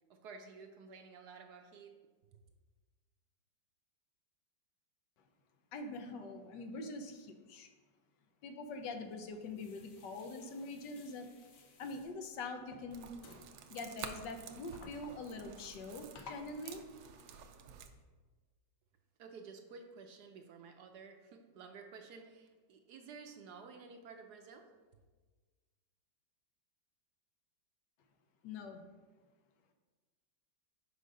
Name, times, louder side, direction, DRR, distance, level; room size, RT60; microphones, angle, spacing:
voice 1, 0.1-1.9 2.3-2.4 19.2-24.7, right 5 dB, 70° right, 5 dB, 1.1 m, -53 dB
voice 2, 5.7-7.7 8.4-11.3 11.8-13.1 13.7-16.8 28.4-28.8, left 3 dB, 75° left, 6 dB, 1.3 m, -44 dB
sound 1, 8.7-18.0, left 4 dB, 55° left, 1.0 m, -59 dB
sound 2, 12.9-17.9, right 8 dB, 85° right, 1.3 m, -51 dB
6.4 x 5.1 x 5.2 m, 1.4 s
omnidirectional pair, 2.0 m